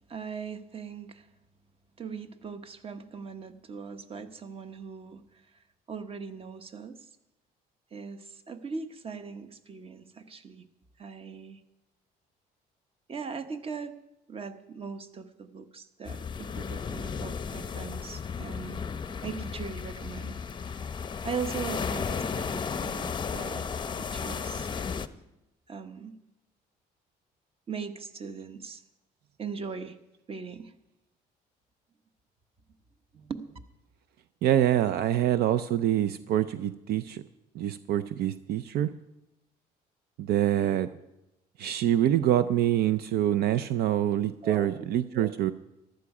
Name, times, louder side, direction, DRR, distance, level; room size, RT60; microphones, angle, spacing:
voice 1, 0.1-1.3 2.0-5.2 5.9-7.0 7.9-10.7 11.0-11.6 13.1-14.0 14.3-18.8 19.2-20.4 21.2-23.7 23.9-24.7 25.7-26.2 27.7-28.8 29.4-30.0 30.3-30.7 33.1-33.6 44.4-44.9 45.1-45.3, right 5 dB, 35° right, 10 dB, 1.0 m, -39 dB
sound 1, 16.1-25.1, left 6 dB, 25° left, 0.6 m, -34 dB
voice 2, 34.4-37.2 37.5-38.9 40.2-40.9 41.6-45.5, right 11 dB, 70° right, 13 dB, 0.5 m, -25 dB
14.5 x 12.0 x 4.9 m, 0.91 s
cardioid pair, 110°, 17 cm